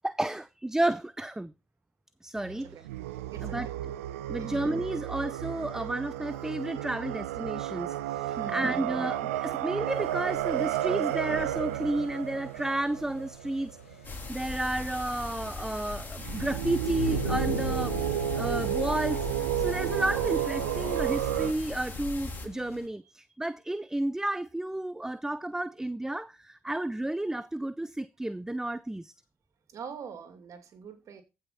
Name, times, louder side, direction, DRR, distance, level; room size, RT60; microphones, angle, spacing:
voice 1, 0.0-1.5 2.2-2.9 3.4-3.7 4.3-18.0 18.4-19.3 19.6-29.1, right 1 dB, 5° right, 0.5 m, -32 dB
sound 1, 2.4-14.3 16.2-21.5, right 13 dB, 75° right, 0.7 m, -32 dB
voice 2, 3.3-3.7 4.4-4.6 8.3-9.0 29.7-31.2, right 6 dB, 50° right, 2.5 m, -43 dB
sound 2, 9.9-22.9, left 4 dB, 85° left, 1.6 m, -43 dB
sound 3, 14.0-22.5, left 3 dB, 25° left, 3.4 m, -38 dB
15.0 x 5.6 x 4.2 m
hypercardioid pair, 55°, 7 cm